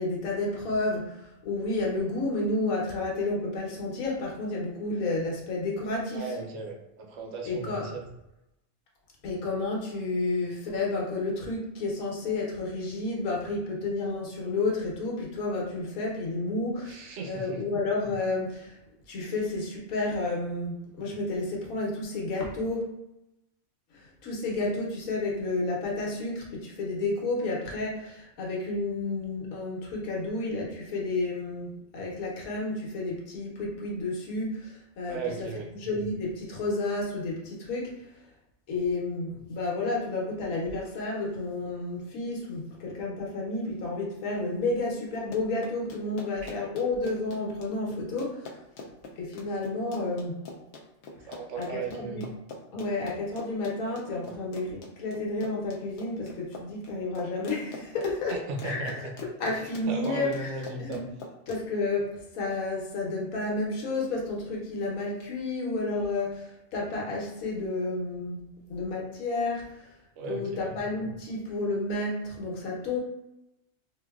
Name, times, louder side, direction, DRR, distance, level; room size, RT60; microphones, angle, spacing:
voice 1, 0.0-6.3 7.4-7.9 9.2-18.8 19.1-22.8 23.9-35.2 35.7-38.1 38.7-48.5 49.2-50.4 51.2-51.3 51.5-52.3 52.7-58.3 58.6-58.9 59.4-60.5 60.8-61.0 61.5-69.9 70.3-73.0, left 2 dB, 85° left, -2 dB, 1.3 m, -31 dB
voice 2, 6.1-8.0 16.9-17.6 35.1-35.7 46.4-46.5 51.3-52.3 58.3-59.1 59.5-61.0 70.2-70.8, right 4 dB, 65° right, 2 dB, 0.9 m, -36 dB
Run, 45.1-61.6, left 3 dB, 65° left, 0.8 m, -44 dB
3.7 x 2.6 x 2.3 m, 0.90 s
omnidirectional pair, 1.4 m